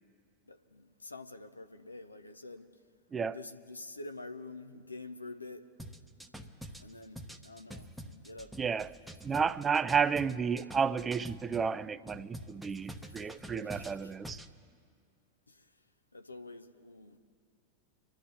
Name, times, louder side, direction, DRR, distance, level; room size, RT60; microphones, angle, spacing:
voice 1, 0.5-2.7 3.3-5.6 6.8-8.5 13.0-13.2 13.7-14.1 15.5-15.7 16.1-17.2, left 2 dB, 80° left, 0.7 m, -47 dB
sound 1, 5.8-11.7 12.1-14.5, equal, ahead, 1.0 m, -46 dB
voice 2, 8.6-9.0 9.2-14.4, right 6 dB, 20° right, 0.4 m, -31 dB
29.0 x 11.5 x 3.4 m
figure-of-eight pair, 90°, 0 cm